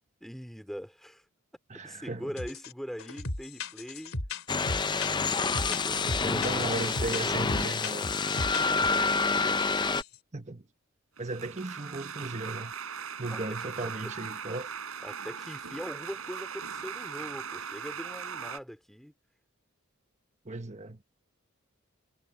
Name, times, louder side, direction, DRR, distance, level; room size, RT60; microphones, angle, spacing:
voice 1, 0.2-1.2 1.8-4.2 5.5-7.4 8.7-9.6 13.3-13.7 15.0-19.1, equal, ahead, 4.1 m, -42 dB
voice 2, 1.7-2.3 5.7-8.1 10.3-10.7 11.2-12.7 13.2-14.7 20.4-21.0, right 2 dB, 35° right, 1.3 m, -36 dB
sound 1, 2.4-2.7 3.0-9.2 9.6-9.7 9.9-10.1, left 2 dB, 70° left, 3.3 m, -37 dB
sound 2, 4.5-10.0, left 4 dB, 20° left, 0.5 m, -28 dB
sound 3, 11.2-18.6, right 6 dB, 80° right, 4.0 m, -39 dB
head